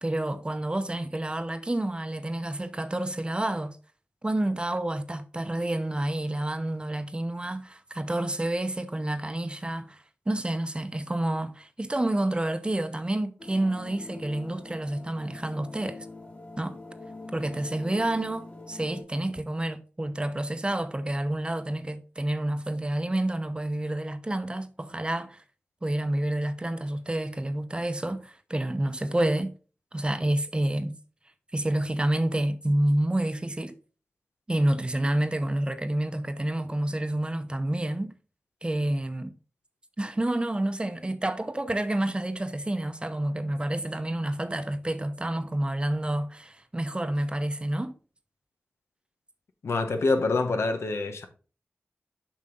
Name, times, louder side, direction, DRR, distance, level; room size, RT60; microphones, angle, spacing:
voice 1, 0.0-3.8 4.2-16.1 16.6-16.8 17.3-25.4 25.8-29.5 29.9-30.9 31.5-33.7 34.5-38.1 38.6-39.3 40.0-47.9, right 1 dB, 25° right, 0.8 m, -29 dB
sound 1, 13.4-19.0, left 2 dB, 40° left, 2.2 m, -43 dB
voice 2, 49.6-51.3, left 3 dB, 85° left, 1.1 m, -26 dB
7.5 x 5.2 x 3.8 m
wide cardioid pair, 65°, 4 cm